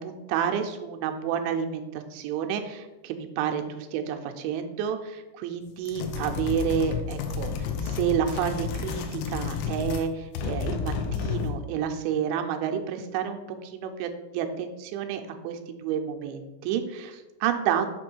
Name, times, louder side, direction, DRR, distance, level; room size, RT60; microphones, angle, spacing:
voice 1, 0.0-17.9, right 8 dB, 85° right, 5 dB, 2.7 m, -30 dB
sound 1, 5.9-10.1 10.3-11.7, left 6 dB, 85° left, 3.1 m, -31 dB
7.5 x 3.1 x 6.0 m, 1.1 s
omnidirectional pair, 5.7 m